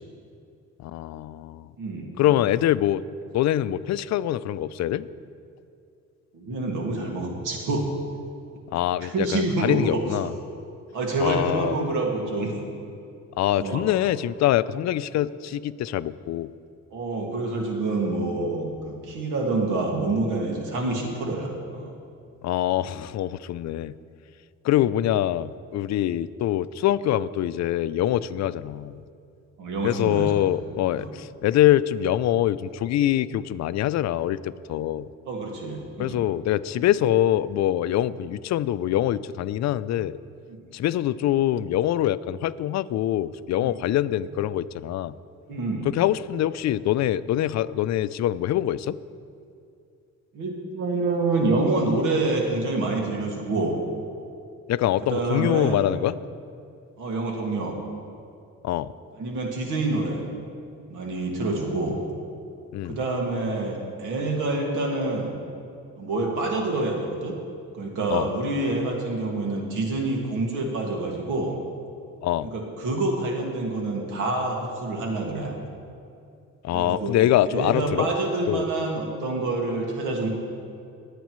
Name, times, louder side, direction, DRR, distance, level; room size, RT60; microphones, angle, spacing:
voice 1, 0.8-1.7 2.2-3.0 3.3-5.1 8.7-10.3 11.2-11.8 13.4-16.5 22.4-23.9 24.6-29.0 29.8-35.1 36.0-40.2 40.7-45.2 45.9-49.0 54.7-56.2 58.6-58.9 62.7-63.0 68.1-68.3 72.2-72.5 76.6-78.1 78.5-78.7, left 12 dB, 65° left, 16 dB, 0.4 m, -24 dB
voice 2, 1.8-2.4 6.3-7.9 9.0-10.3 10.9-12.5 13.6-13.8 16.9-21.9 29.6-30.3 30.9-31.1 35.3-36.2 40.5-40.6 43.6-43.8 45.5-45.9 50.3-53.8 55.0-55.7 57.0-57.8 59.2-60.2 60.9-62.0 62.9-65.3 66.0-67.3 67.7-71.6 72.5-75.5 76.7-77.1 77.5-80.3, right 2 dB, 85° right, 0 dB, 2.0 m, -27 dB
20.0 x 8.3 x 3.1 m, 2.4 s
cardioid pair, 90°, 30 cm